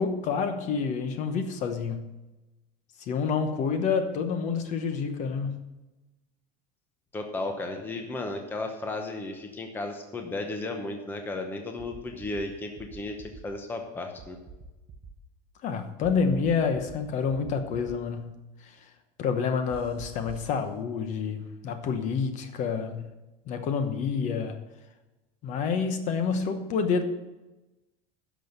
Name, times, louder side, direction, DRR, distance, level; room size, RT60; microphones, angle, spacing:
voice 1, 0.0-2.1 3.1-5.5 15.6-18.4 19.2-23.1 23.5-24.6 25.4-27.0, left 5 dB, 40° left, 8 dB, 1.0 m, -28 dB
voice 2, 7.1-13.2 13.4-14.4, left 2 dB, 10° left, 4 dB, 0.8 m, -34 dB
sound 1, 11.8-12.4 12.8-13.4 14.2-15.1 16.0-17.0 17.3-18.0 19.7-20.5, right 5 dB, 30° right, 0.8 m, -45 dB
10.5 x 6.3 x 6.7 m, 1.1 s
cardioid pair, 165°, 19 cm